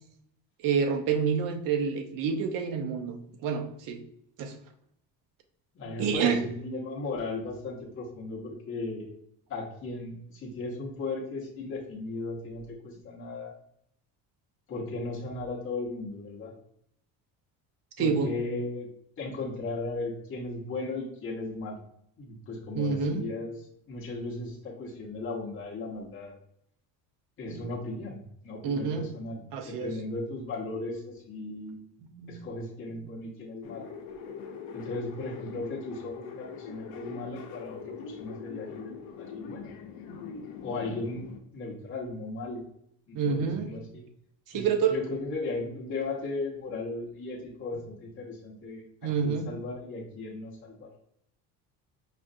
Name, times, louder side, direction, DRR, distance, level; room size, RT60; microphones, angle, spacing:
voice 1, 0.6-4.0 4.4-4.5 5.9-6.4 18.0-18.3 22.7-23.2 27.5-27.6 28.6-29.1 29.5-29.9 32.1-32.5 40.1-40.3 43.1-43.9 44.5-45.0 49.0-49.4, right 6 dB, 60° right, 5 dB, 0.7 m, -28 dB
voice 2, 5.7-9.1 9.5-13.5 14.7-16.5 18.0-18.9 19.2-21.8 22.2-23.6 23.9-26.3 27.4-29.4 29.7-31.8 32.3-33.9 34.7-39.7 40.6-42.6 43.1-44.0 44.5-50.9, left 2 dB, 35° left, -5 dB, 0.9 m, -36 dB
sound 1, 33.6-41.4, left 6 dB, 70° left, 0.8 m, -42 dB
5.0 x 2.5 x 2.6 m, 0.71 s
cardioid pair, 150°, 37 cm